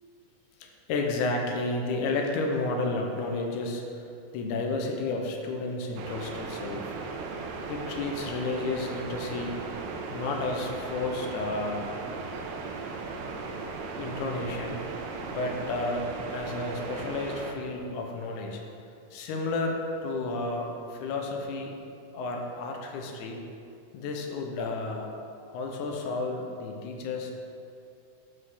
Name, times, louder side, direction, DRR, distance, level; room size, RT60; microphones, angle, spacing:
voice 1, 0.6-3.8 4.3-7.0 7.7-9.6 10.1-11.9 14.0-14.8 15.3-18.7 19.1-21.8 22.1-23.4 23.9-25.1 25.5-27.3, left 3 dB, 75° left, 2 dB, 2.1 m, -32 dB
sound 1, 6.0-17.5, right 4 dB, 85° right, 2.4 m, -37 dB
7.6 x 5.2 x 6.2 m, 2.5 s
omnidirectional pair, 3.8 m